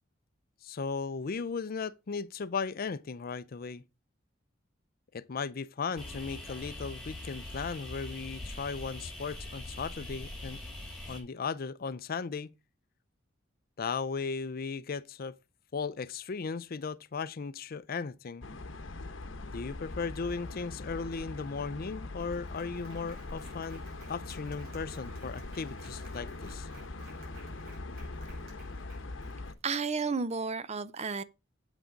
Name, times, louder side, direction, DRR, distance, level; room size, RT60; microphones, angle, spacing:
voice 1, 0.6-3.8 5.1-10.6 11.1-12.5 13.8-15.4 15.7-18.5 19.5-23.8 24.1-26.7, left 5 dB, 50° left, 0.5 m, -36 dB
sound 1, 6.0-11.2, left 1 dB, ahead, 3.9 m, -42 dB
sound 2, 18.4-29.5, left 2 dB, 75° left, 1.0 m, -42 dB
Applause, 21.8-21.9 22.2-29.7, right 2 dB, 55° right, 5.7 m, -57 dB
voice 2, 29.6-31.2, right 4 dB, 35° right, 0.6 m, -32 dB
8.3 x 6.2 x 5.1 m
head